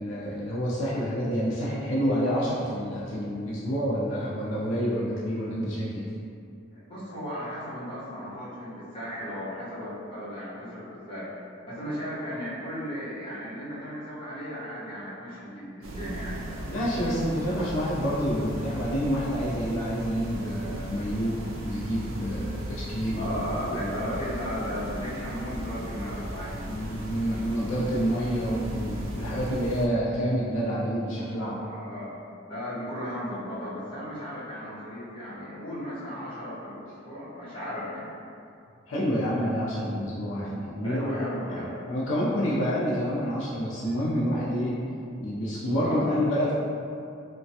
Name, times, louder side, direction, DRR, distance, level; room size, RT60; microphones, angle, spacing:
voice 1, 0.0-6.1 16.7-23.8 26.7-31.6 38.9-41.6 41.9-44.8 45.2-46.5, equal, 75° left, -7 dB, 0.5 m, -28 dB
voice 2, 6.7-16.7 23.1-26.7 31.5-32.2 32.5-38.1 40.8-41.7 45.8-46.2, equal, 30° left, -11 dB, 0.9 m, -35 dB
sound 1, 15.8-29.9, right 1 dB, 85° right, 0.4 m, -37 dB
3.1 x 2.2 x 2.7 m, 2.5 s
head